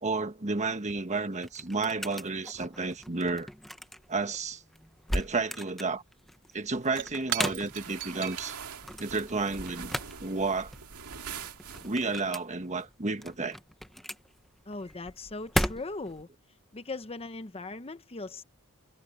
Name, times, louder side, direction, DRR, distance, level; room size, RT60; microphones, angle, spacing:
voice 1, 0.0-3.5 4.1-4.6 5.1-6.0 6.5-8.6 9.0-9.9 10.2-10.7 11.8-13.6, right 3 dB, 30° right, 1.4 m, -31 dB
sound 1, 0.8-16.2, equal, ahead, 1.1 m, -38 dB
Shatter / Crushing, 6.3-11.2, right 10 dB, 55° right, 3.9 m, -41 dB
sound 2, 7.6-12.3, right 6 dB, 85° right, 2.2 m, -44 dB
voice 2, 14.7-16.3 16.7-18.4, left 3 dB, 25° left, 0.8 m, -39 dB
head